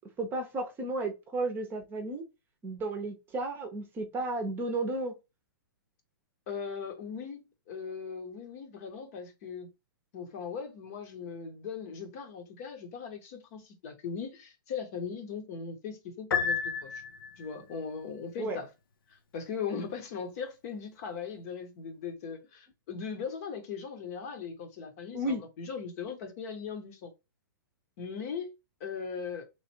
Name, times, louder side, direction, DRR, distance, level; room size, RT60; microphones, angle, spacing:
voice 1, 0.2-2.2 2.6-5.1 18.4-18.6 25.1-25.4, right 2 dB, 20° right, 0.8 m, -33 dB
voice 2, 6.5-9.7 10.1-17.0 17.4-18.7 19.1-27.1 28.0-28.5 28.8-29.4, left 6 dB, 45° left, 1.0 m, -39 dB
Piano, 16.3-17.6, left 6 dB, 80° left, 0.7 m, -31 dB
3.1 x 2.4 x 4.4 m
hypercardioid pair, 140°, 11 cm